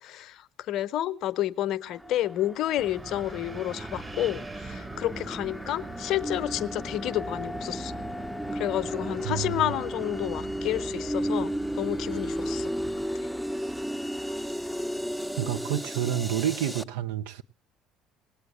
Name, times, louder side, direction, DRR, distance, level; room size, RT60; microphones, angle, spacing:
voice 1, 0.0-7.9 8.5-12.7, left 13 dB, 55° left, 0.7 m, -30 dB
sound 1, 1.9-16.8, equal, ahead, 0.7 m, -34 dB
Wind, 2.8-13.1, right 3 dB, 25° right, 1.4 m, -42 dB
voice 2, 9.2-9.7 15.4-17.4, right 10 dB, 70° right, 0.7 m, -29 dB
19.0 x 8.6 x 7.7 m
figure-of-eight pair, 55°, 0 cm